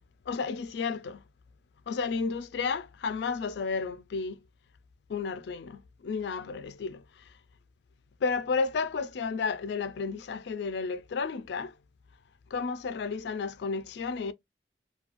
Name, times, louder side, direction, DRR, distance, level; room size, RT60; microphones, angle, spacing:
voice 1, 0.3-1.2 1.9-4.4 5.1-7.0 8.2-11.7 12.5-14.3, left 5 dB, 70° left, 0.3 m, -32 dB
2.9 x 2.2 x 2.5 m
head